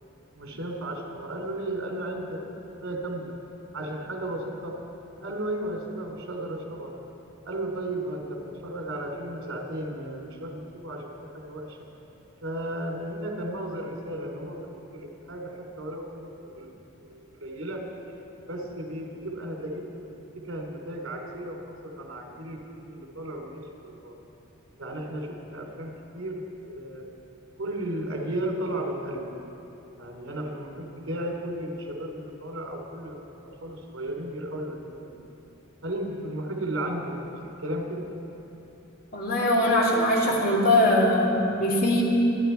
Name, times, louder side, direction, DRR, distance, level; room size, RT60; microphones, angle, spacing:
voice 1, 0.3-3.3 3.7-4.7 5.2-6.9 7.4-11.8 12.4-17.8 18.5-24.2 24.8-27.1 27.6-29.3 29.9-35.2 35.8-37.2 37.6-38.1, right 1 dB, 85° right, 1 dB, 3.3 m, -34 dB
voice 2, 39.1-42.0, left 1 dB, 45° left, -3 dB, 2.5 m, -21 dB
28.0 x 11.0 x 4.6 m, 3.0 s
head